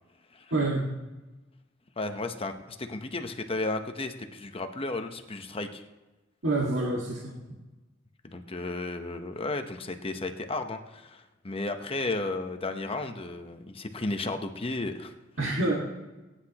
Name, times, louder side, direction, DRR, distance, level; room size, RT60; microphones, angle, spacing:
voice 1, 0.5-0.9 6.4-7.4 15.4-15.7, right 2 dB, 75° right, -2 dB, 1.8 m, -27 dB
voice 2, 2.0-5.8 8.2-15.1, left 2 dB, 30° left, 6 dB, 0.9 m, -34 dB
22.5 x 9.9 x 2.9 m, 1.1 s
head